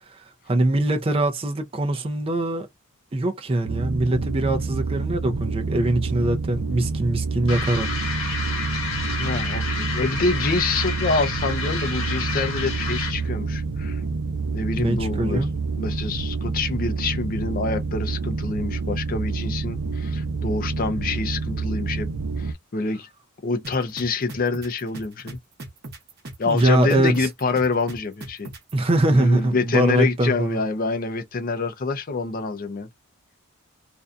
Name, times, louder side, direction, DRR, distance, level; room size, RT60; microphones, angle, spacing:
voice 1, 0.1-2.7 3.1-7.9 14.8-15.5 26.5-27.3 28.7-30.6, right 1 dB, 25° right, 0.4 m, -22 dB
sound 1, 3.7-22.5, right 4 dB, 80° right, 0.5 m, -28 dB
sound 2, 7.5-13.3, left 4 dB, 60° left, 1.1 m, -30 dB
voice 2, 9.2-14.0 14.5-15.5 15.8-22.1 22.4-23.1 23.4-25.4 26.4-28.5 29.1-32.9, left 3 dB, 40° left, 0.5 m, -26 dB
sound 3, 23.6-28.7, right 2 dB, 45° right, 1.0 m, -38 dB
2.5 x 2.2 x 2.4 m
head